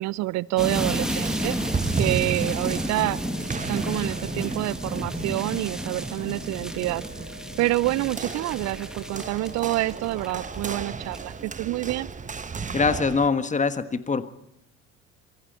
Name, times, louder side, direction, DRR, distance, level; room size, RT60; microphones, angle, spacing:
voice 1, 0.0-1.6 1.9-3.2 3.7-7.0 7.6-12.1, right 18 dB, 45° right, 23 dB, 0.7 m, -27 dB
sound 1, 0.6-10.7 11.0-11.3, right 1 dB, ahead, 2.3 m, -32 dB
sound 2, 0.8-13.3, right 5 dB, 20° right, 1.3 m, -34 dB
Organ, 1.0-11.7, left 5 dB, 45° left, 5.3 m, -48 dB
voice 2, 12.7-14.3, left 4 dB, 20° left, 12 dB, 1.5 m, -23 dB
26.5 x 24.0 x 4.4 m, 0.78 s
figure-of-eight pair, 60°, 38 cm